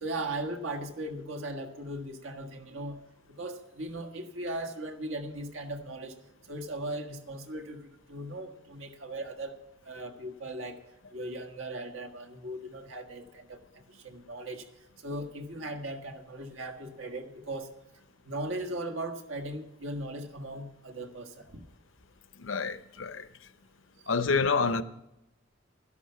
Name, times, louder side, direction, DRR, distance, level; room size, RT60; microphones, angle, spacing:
voice 1, 0.0-6.2 6.5-9.5 9.8-10.8 11.1-13.6 13.9-14.7 15.0-17.7 18.2-21.6, right 1 dB, 85° right, 1.5 m, -38 dB
voice 2, 22.4-23.3 24.1-24.8, left 4 dB, 75° left, 0.7 m, -28 dB
12.5 x 11.5 x 5.7 m
head